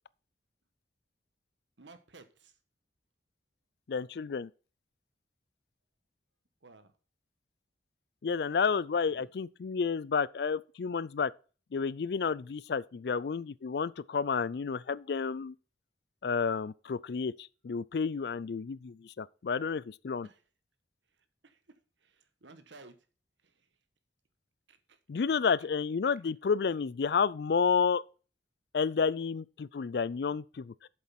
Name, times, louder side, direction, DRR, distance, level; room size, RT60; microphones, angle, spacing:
voice 1, 1.8-2.5 6.6-6.9 9.1-9.3 20.2-20.4 21.4-21.6 22.0-23.0 23.4-23.7 24.7-25.0, right 3 dB, 80° right, 1.3 m, -55 dB
voice 2, 3.9-4.5 8.2-11.3 11.7-15.5 16.2-20.3 25.1-28.0 28.7-30.7, left 5 dB, 60° left, 0.4 m, -30 dB
7.8 x 7.3 x 5.7 m
head